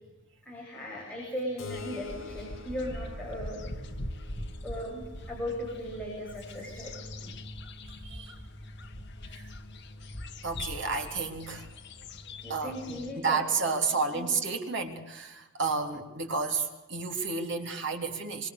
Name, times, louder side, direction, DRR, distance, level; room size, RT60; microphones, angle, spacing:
voice 1, 0.4-3.8 4.6-7.1 12.4-13.4 13.9-14.3, equal, 5° left, -4 dB, 7.4 m, -38 dB
Keyboard (musical), 1.6-6.7, left 4 dB, 70° left, 7.7 m, -47 dB
sound 1, 1.7-13.1, left 1 dB, 55° left, 2.1 m, -42 dB
voice 2, 7.9-8.3 9.3-9.5 10.4-11.7 12.5-18.5, right 4 dB, 55° right, 3 dB, 3.5 m, -31 dB
26.0 x 25.5 x 6.8 m, 1.0 s
head